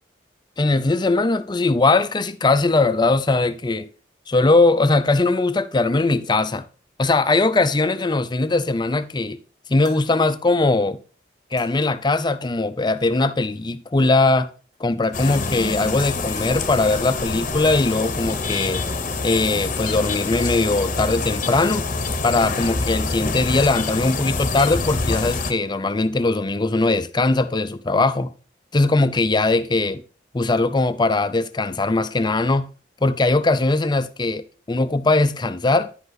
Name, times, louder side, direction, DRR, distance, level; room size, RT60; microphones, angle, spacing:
voice 1, 0.6-3.9 4.3-6.6 7.0-9.4 9.7-11.0 11.5-14.5 14.8-18.8 19.2-21.9 22.2-28.3 28.7-30.0 30.3-32.7 33.0-35.9, left 3 dB, 25° left, 0.5 m, -20 dB
sound 1, 6.4-6.5 7.0-7.8 9.9-10.7 11.6-12.1 13.6-13.7 14.7-14.8 15.0-18.0, right 2 dB, 45° right, 2.0 m, -43 dB
sound 2, 15.1-25.5, left 3 dB, 45° left, 0.9 m, -26 dB
10.0 x 5.3 x 4.0 m
head